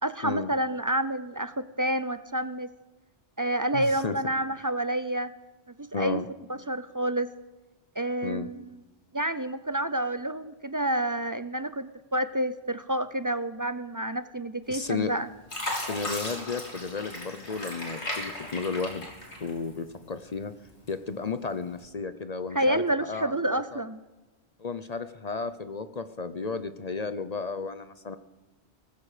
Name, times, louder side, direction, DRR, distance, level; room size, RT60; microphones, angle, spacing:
voice 1, 0.0-2.7 3.4-5.3 5.8-6.2 6.7-7.3 8.0-8.6 9.1-15.3 22.5-24.0, right 1 dB, 30° right, 12 dB, 0.3 m, -29 dB
voice 2, 3.7-4.2 5.9-6.3 8.2-8.5 14.7-15.2 15.7-19.1 19.4-20.5 20.9-23.8 24.6-28.2, left 4 dB, 40° left, 11 dB, 0.8 m, -33 dB
Fill (with liquid), 14.7-15.1 15.5-19.9 20.3-21.1 21.7-21.8, left 1 dB, 85° left, 4.2 m, -36 dB
19.0 x 15.0 x 5.0 m, 1.1 s
omnidirectional pair, 1.1 m